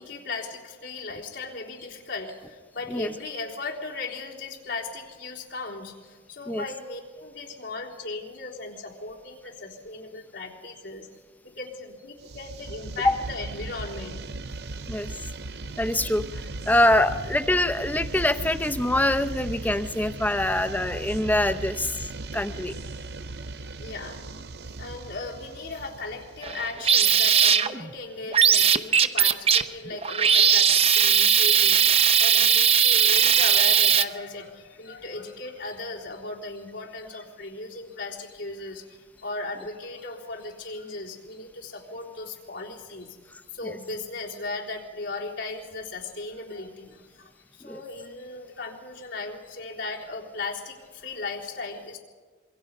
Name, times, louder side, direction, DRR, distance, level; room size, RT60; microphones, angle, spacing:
voice 1, 0.0-14.3 23.8-24.2 24.8-52.0, left 3 dB, 85° left, -3 dB, 3.8 m, -37 dB
sound 1, 12.2-27.0, right 2 dB, 60° right, 0.7 m, -37 dB
voice 2, 15.8-16.3 16.7-22.1 22.3-22.7 43.6-43.8 47.6-47.8, left 1 dB, 10° left, 10 dB, 0.7 m, -24 dB
sound 2, 26.4-27.9 28.3-34.0, right 8 dB, 30° right, 0.8 m, -19 dB
26.5 x 23.5 x 5.4 m, 1.4 s
head